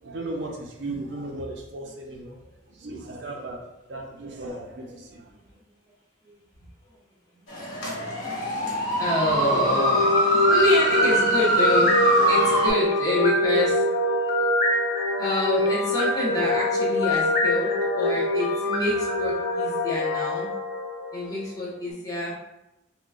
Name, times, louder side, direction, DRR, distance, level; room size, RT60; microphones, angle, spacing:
voice 1, 0.0-3.6 3.9-5.3, right 2 dB, 65° right, 0 dB, 0.5 m, -36 dB
sound 1, 7.5-12.7, right 1 dB, 85° left, 1.2 m, -23 dB
voice 2, 8.9-13.8 15.2-20.5 21.1-22.4, left 1 dB, 20° left, -7 dB, 0.9 m, -27 dB
sound 2, 9.3-21.4, left 1 dB, 45° left, 0.5 m, -24 dB
3.7 x 2.2 x 2.4 m, 0.92 s
head